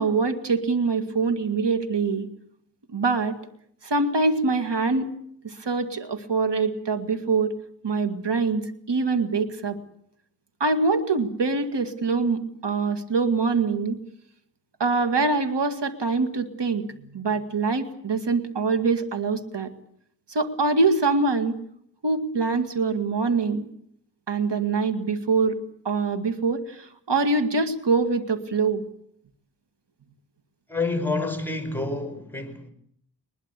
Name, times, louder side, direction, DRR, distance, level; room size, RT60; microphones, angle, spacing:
voice 1, 0.0-2.3 2.9-3.4 3.8-5.1 5.4-7.5 7.8-9.8 10.6-14.0 14.8-19.7 20.3-21.6 22.0-23.7 24.3-25.6 25.8-28.8, right 4 dB, 85° right, 2.1 m, -24 dB
voice 2, 30.7-32.7, left 3 dB, 5° left, 5.1 m, -28 dB
22.5 x 21.5 x 8.3 m
cardioid pair, 40°, 41 cm